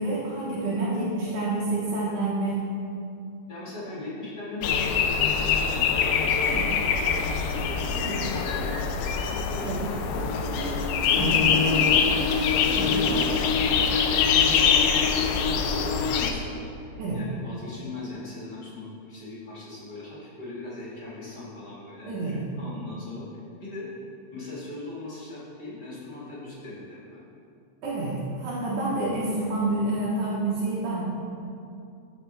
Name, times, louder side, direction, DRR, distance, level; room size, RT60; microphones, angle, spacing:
voice 1, 0.0-2.7 6.5-6.7 8.0-8.2 9.6-9.8 11.1-11.5 12.7-13.0 14.2-14.4 17.0-17.2 22.1-22.4 27.8-31.0, right 2 dB, 75° right, -8 dB, 2.8 m, -28 dB
voice 2, 3.5-23.3 23.6-23.9 24.3-27.2, left 2 dB, 35° left, -8 dB, 2.7 m, -40 dB
sound 1, 4.6-16.3, left 6 dB, 80° left, 1.5 m, -24 dB
13.5 x 6.0 x 3.4 m, 2.5 s
omnidirectional pair, 3.5 m